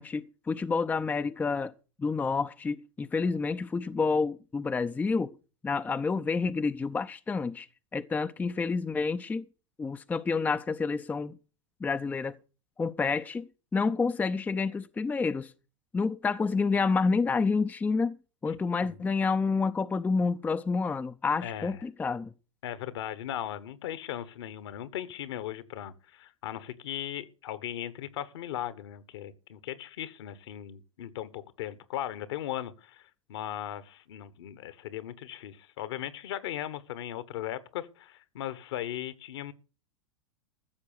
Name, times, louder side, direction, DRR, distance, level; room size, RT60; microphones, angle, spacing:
voice 1, 0.0-1.7 2.0-5.4 5.6-7.7 7.9-9.5 9.8-11.4 11.8-12.4 12.8-15.5 15.9-22.3, left 4 dB, 10° left, 0.5 m, -29 dB
voice 2, 21.4-21.7 22.6-39.5, left 12 dB, 60° left, 1.3 m, -38 dB
14.5 x 7.0 x 6.7 m
figure-of-eight pair, 90°, 15 cm